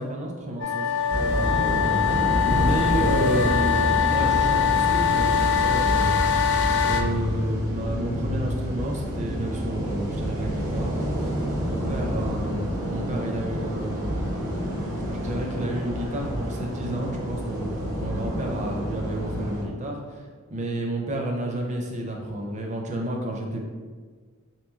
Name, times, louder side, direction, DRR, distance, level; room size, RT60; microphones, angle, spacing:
voice 1, 0.0-6.3 6.8-14.2 15.1-23.6, right 1 dB, 35° right, 1 dB, 0.5 m, -31 dB
sound 1, 0.6-7.0, left 7 dB, 55° left, 0.4 m, -23 dB
sound 2, 1.1-19.6, equal, 65° right, 0.9 m, -28 dB
sound 3, 7.4-16.6, right 3 dB, 85° right, 0.3 m, -40 dB
3.4 x 3.0 x 3.5 m, 1.5 s
head